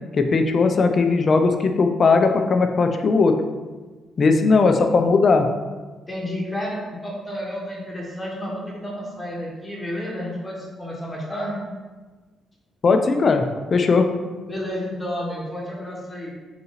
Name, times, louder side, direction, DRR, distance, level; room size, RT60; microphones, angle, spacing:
voice 1, 0.1-3.4 4.2-5.5 12.8-13.4 13.7-14.1, left 4 dB, 45° left, 6 dB, 0.4 m, -18 dB
voice 2, 6.1-11.6 14.5-16.3, equal, 15° left, -4 dB, 1.3 m, -31 dB
3.9 x 2.7 x 3.9 m, 1.3 s
cardioid pair, 90°, 0 cm